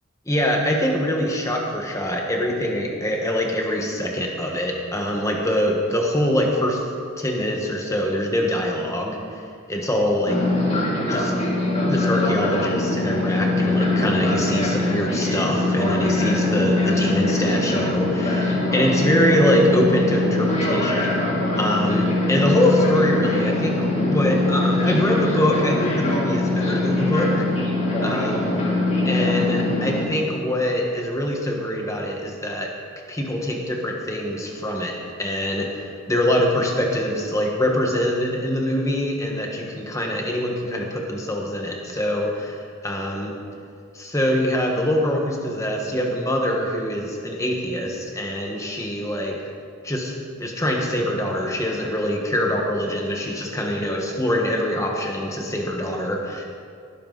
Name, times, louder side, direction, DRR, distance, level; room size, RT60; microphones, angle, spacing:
voice 1, 0.3-6.8 7.2-9.2 9.7-10.4 11.1-11.3 11.9-21.3 21.6-27.5 28.0-28.5 29.0-32.7 33.1-43.4 43.9-49.4 49.8-50.1 50.4-56.4, equal, 15° left, 1 dB, 1.3 m, -24 dB
Fixed-wing aircraft airplane, 10.3-30.0, left 2 dB, 30° left, 2.8 m, -22 dB
19.0 x 12.5 x 4.0 m, 2.3 s
head